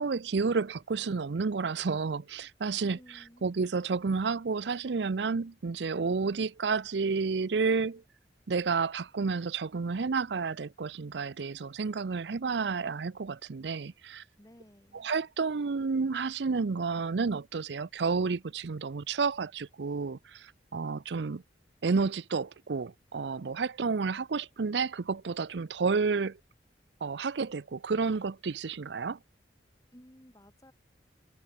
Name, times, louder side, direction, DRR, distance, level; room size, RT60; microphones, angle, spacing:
voice 1, 0.0-8.0 8.5-14.2 14.9-21.4 21.8-26.4 27.0-29.2, right 4 dB, 80° right, 0.6 m, -31 dB
voice 2, 2.8-3.5 14.4-15.1 29.9-30.7, equal, 20° left, 7.6 m, -55 dB
head